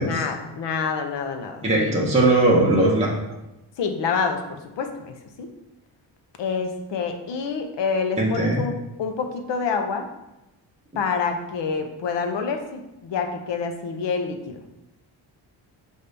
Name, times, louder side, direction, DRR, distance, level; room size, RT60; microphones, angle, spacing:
voice 1, 0.0-2.0 3.8-5.5 6.4-10.1 10.9-14.6, left 5 dB, 60° left, 5 dB, 0.8 m, -27 dB
voice 2, 1.6-3.1 8.2-8.6, right 2 dB, 15° right, -4 dB, 1.0 m, -19 dB
5.2 x 2.7 x 3.3 m, 0.97 s
cardioid pair, 65°, 49 cm